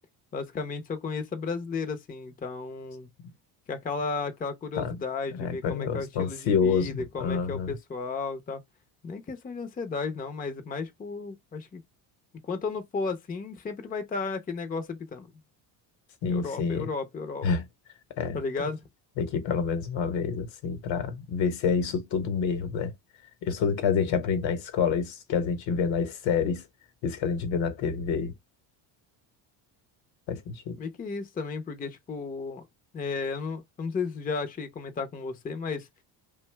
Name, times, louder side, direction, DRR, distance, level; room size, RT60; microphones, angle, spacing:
voice 1, 0.3-3.1 3.7-8.6 9.0-11.8 12.4-15.3 16.3-17.5 18.3-18.8 30.8-32.7 32.9-35.9, left 4 dB, 20° left, 0.5 m, -34 dB
voice 2, 5.3-7.8 16.2-16.9 17.4-17.6 18.2-18.7 19.2-22.9 23.4-26.6 27.0-28.3 30.3-30.8, left 6 dB, 65° left, 1.0 m, -28 dB
2.6 x 2.2 x 3.1 m
supercardioid pair, 95°, 48 cm